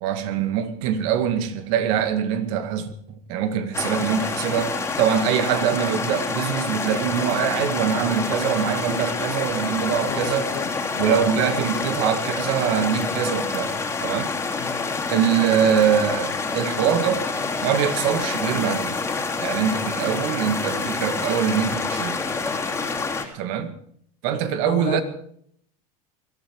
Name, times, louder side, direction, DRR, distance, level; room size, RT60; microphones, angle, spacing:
voice 1, 0.0-10.4 11.0-14.4 15.1-17.3 17.6-19.0 19.4-22.2 23.3-23.7 24.2-25.0, right 8 dB, 65° right, 2.1 m, -23 dB
sound 1, 3.7-23.2, left 4 dB, 15° left, 3.1 m, -27 dB
voice 2, 10.0-11.9 14.5-14.9 24.7-25.0, left 9 dB, 45° left, 2.2 m, -34 dB
21.0 x 13.5 x 4.8 m
supercardioid pair, 115°, 18 cm